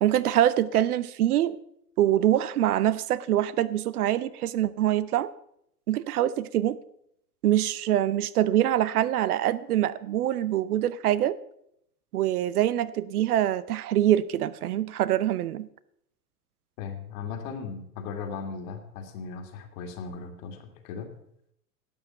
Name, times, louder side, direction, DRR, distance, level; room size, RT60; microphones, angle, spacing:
voice 1, 0.0-1.6 2.0-5.3 5.9-6.8 7.4-11.4 12.1-15.7, right 12 dB, 70° right, 17 dB, 0.8 m, -24 dB
voice 2, 16.8-21.1, left 5 dB, 55° left, 6 dB, 2.2 m, -37 dB
12.0 x 8.7 x 5.8 m, 0.74 s
figure-of-eight pair, 85°, 46 cm